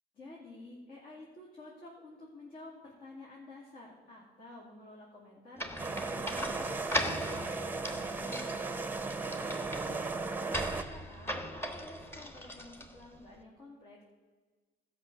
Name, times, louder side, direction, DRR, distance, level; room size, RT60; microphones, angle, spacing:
voice 1, 0.1-14.0, left 2 dB, 60° left, -4 dB, 2.6 m, -51 dB
sound 1, 5.6-13.2, equal, 15° left, 1.3 m, -39 dB
sound 2, 5.8-10.8, right 3 dB, 10° right, 0.7 m, -36 dB
13.0 x 5.8 x 6.8 m, 1.4 s
cardioid pair, 110°, 17 cm